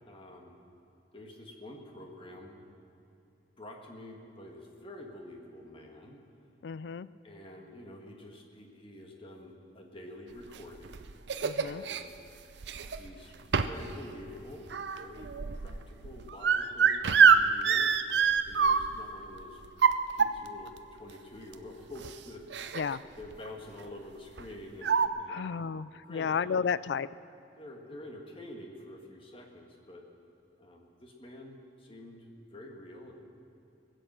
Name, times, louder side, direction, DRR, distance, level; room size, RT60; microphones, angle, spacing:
voice 1, 0.1-0.6 1.1-2.6 3.6-6.2 7.2-11.0 11.6-12.2 12.9-14.7 15.0-17.9 18.5-19.6 20.1-22.9 23.2-25.5 26.0-26.4 27.6-30.0 30.6-33.1, left 1 dB, 30° left, 1 dB, 1.7 m, -48 dB
voice 2, 6.6-7.1 11.4-11.8 22.8-23.0 25.3-27.1, left 6 dB, 70° left, 18 dB, 0.4 m, -32 dB
sound 1, 10.6-12.0 12.6-13.1 13.5-13.9 14.2-19.1 19.6-20.7 21.5-21.6 22.0-22.1 22.5-23.0 23.2-23.5 24.4-24.5 24.8-25.1, right 6 dB, 70° right, 0.5 m, -25 dB
20.0 x 8.1 x 7.5 m, 2.7 s
head